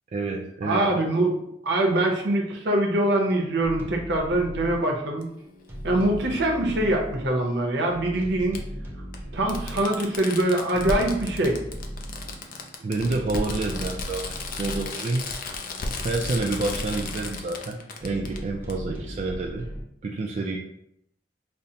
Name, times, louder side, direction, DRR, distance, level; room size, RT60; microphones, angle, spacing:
voice 1, 0.1-1.0 12.8-15.3 16.0-19.7 20.0-20.6, right 3 dB, 40° right, 0 dB, 0.3 m, -29 dB
voice 2, 0.6-1.4 1.6-5.2 5.8-8.6 9.3-11.6, right 1 dB, 70° right, 0 dB, 0.7 m, -23 dB
sound 1, 3.6-19.8, equal, 15° right, 0.7 m, -38 dB
Fireworks, 5.2-5.3 6.8-6.9 8.5-8.6 9.1-9.2 9.5-18.4 18.7-18.8, left 3 dB, 50° left, 0.4 m, -34 dB
5.3 x 2.1 x 2.7 m, 0.77 s
head